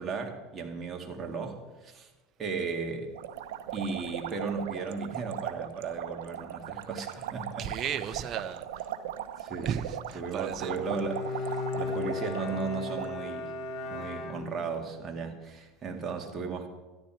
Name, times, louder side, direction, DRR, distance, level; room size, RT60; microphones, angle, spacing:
voice 1, 0.0-2.1 2.4-3.1 3.7-7.6 9.4-9.7 10.2-13.6 13.9-16.7, right 4 dB, 30° right, 2.1 m, -36 dB
sound 1, 3.1-13.1, right 11 dB, 85° right, 0.9 m, -39 dB
voice 2, 7.6-8.9 9.6-10.8, right 9 dB, 45° right, 0.8 m, -35 dB
Bowed string instrument, 10.6-14.9, left 3 dB, 25° left, 2.8 m, -36 dB
13.5 x 11.0 x 4.5 m
supercardioid pair, 115°, 0 cm